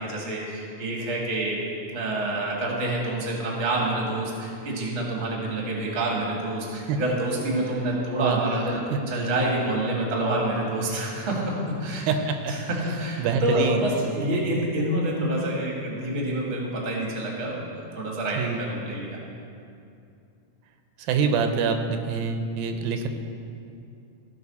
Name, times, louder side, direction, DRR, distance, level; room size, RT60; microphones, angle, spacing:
voice 1, 0.0-1.6 1.9-11.5 11.8-12.0 12.5-19.2, right 1 dB, 40° right, -2 dB, 1.1 m, -27 dB
voice 2, 12.1-12.5 13.2-13.8 18.4-18.6 21.0-23.1, right 6 dB, 85° right, 6 dB, 2.5 m, -25 dB
15.0 x 5.5 x 4.1 m, 2.5 s
omnidirectional pair, 4.1 m